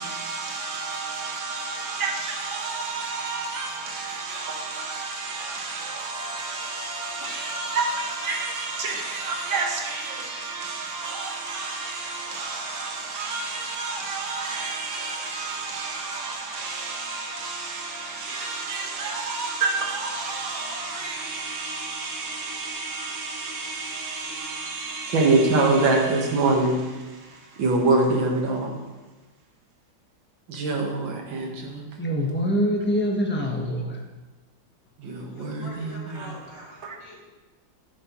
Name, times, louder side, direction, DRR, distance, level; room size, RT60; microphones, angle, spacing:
voice 1, 0.0-26.9 27.6-28.8 30.5-31.9 35.0-36.4 36.8-37.0, right 3 dB, 85° right, 2.2 m, -28 dB
voice 2, 32.0-34.0, equal, 10° left, 0.8 m, -24 dB
voice 3, 35.3-37.2, left 2 dB, 75° left, 2.8 m, -45 dB
11.0 x 8.6 x 3.1 m
omnidirectional pair, 2.1 m